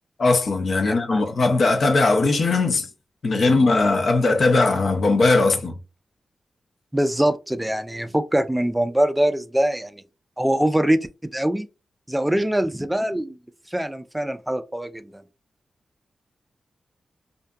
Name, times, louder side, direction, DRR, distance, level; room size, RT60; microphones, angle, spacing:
voice 1, 0.2-2.9 3.2-5.7, left 3 dB, 65° left, 0.6 m, -19 dB
voice 2, 0.8-1.2 6.9-10.0 10.4-11.7 12.1-13.4 13.7-15.2, right 1 dB, 10° right, 0.3 m, -23 dB
2.5 x 2.5 x 2.2 m
cardioid pair, 55°, 0 cm